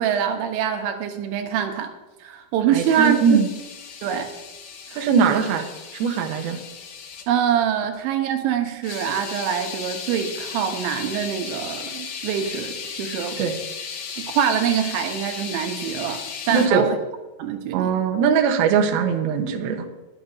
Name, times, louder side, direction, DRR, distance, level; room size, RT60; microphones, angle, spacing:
voice 1, 0.0-1.9 2.2-3.4 4.0-4.3 4.9-5.4 7.3-13.4 14.2-17.0 17.4-17.9, right 8 dB, 90° right, 5 dB, 3.4 m, -24 dB
sound 1, 2.7-7.3 8.8-16.7, left 6 dB, 70° left, 3.1 m, -35 dB
voice 2, 2.7-3.5 4.9-5.7 5.9-6.6 13.4-13.5 16.5-16.9 17.7-19.9, right 6 dB, 70° right, 4 dB, 2.6 m, -20 dB
21.0 x 9.1 x 2.7 m, 1.1 s
omnidirectional pair, 5.2 m